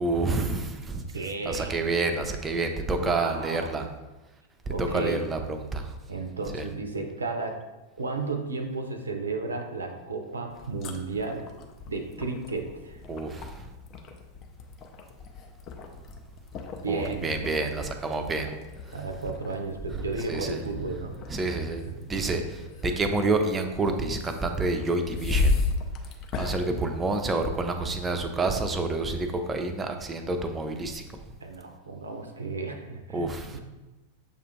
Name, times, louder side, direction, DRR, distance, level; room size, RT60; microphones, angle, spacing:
voice 1, 0.0-1.0 1.4-3.9 4.8-5.9 6.5-6.6 13.1-13.7 16.9-18.5 19.9-20.6 21.3-21.8 22.1-25.6 26.3-31.0 33.1-33.6, right 3 dB, 20° right, 6 dB, 0.5 m, -28 dB
voice 2, 1.1-1.8 3.0-3.7 4.7-5.2 6.1-7.6 8.0-11.5 11.9-13.0 16.8-17.3 18.9-21.2 21.9-22.1 31.4-33.6, right 3 dB, 75° right, 5 dB, 0.5 m, -33 dB
sound 1, 10.5-27.7, left 3 dB, 35° left, 0.5 m, -35 dB
6.6 x 2.5 x 3.0 m, 1.1 s
figure-of-eight pair, 90°, 0 cm